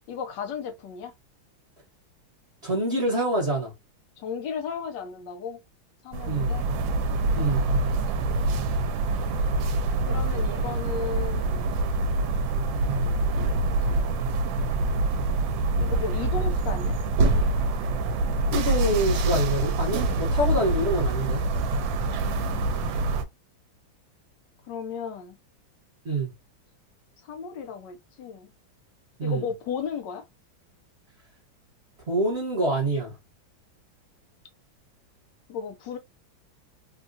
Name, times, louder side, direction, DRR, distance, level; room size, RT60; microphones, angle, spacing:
voice 1, 0.1-1.1 4.2-5.6 6.0-6.6 8.3-8.7 10.0-11.7 13.7-14.1 15.8-17.0 20.0-20.2 22.0-22.9 24.7-25.4 27.2-28.5 29.2-30.3 35.5-36.0, left 6 dB, 70° left, 1.3 m, -35 dB
voice 2, 2.6-3.7 6.2-6.6 7.3-7.6 12.8-13.0 18.5-21.4 26.0-26.3 29.2-29.4 32.1-33.1, right 1 dB, 40° right, 1.3 m, -26 dB
sound 1, 6.1-23.2, right 2 dB, 80° right, 1.3 m, -25 dB
3.7 x 2.3 x 2.6 m
omnidirectional pair, 2.1 m